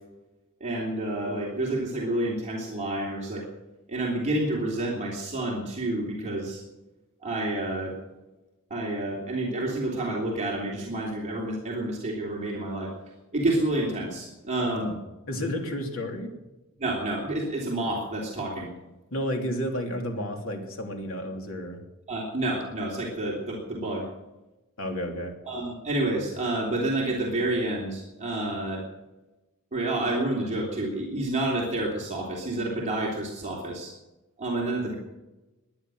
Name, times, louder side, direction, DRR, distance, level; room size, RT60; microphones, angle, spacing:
voice 1, 0.6-3.5 3.9-6.6 7.2-8.0 8.7-12.9 13.3-14.9 16.8-18.7 22.1-24.1 25.5-28.8 29.7-33.9 34.4-34.9, right 1 dB, 35° right, -3 dB, 3.3 m, -29 dB
voice 2, 14.6-14.9 15.3-16.3 19.1-21.8 24.8-25.3, equal, 70° left, 3 dB, 3.1 m, -31 dB
20.0 x 11.0 x 6.4 m, 1.1 s
head